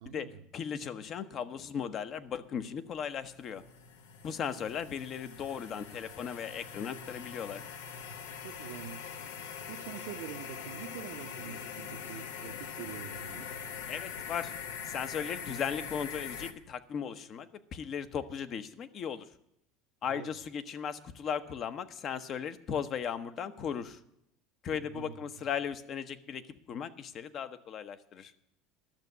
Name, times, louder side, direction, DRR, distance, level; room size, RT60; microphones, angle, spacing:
voice 1, 0.0-0.4 4.3-4.6 8.4-13.5 20.1-20.3 24.8-25.2, right 10 dB, 75° right, 7 dB, 0.9 m, -46 dB
voice 2, 0.5-3.6 4.2-7.7 13.9-14.5 14.8-19.3 20.0-24.0 24.6-28.3, left 7 dB, 45° left, 11 dB, 0.9 m, -37 dB
sound 1, 2.7-16.5, left 7 dB, 85° left, 1.0 m, -43 dB
12.0 x 6.7 x 9.6 m, 0.79 s
supercardioid pair, 95°, 0 cm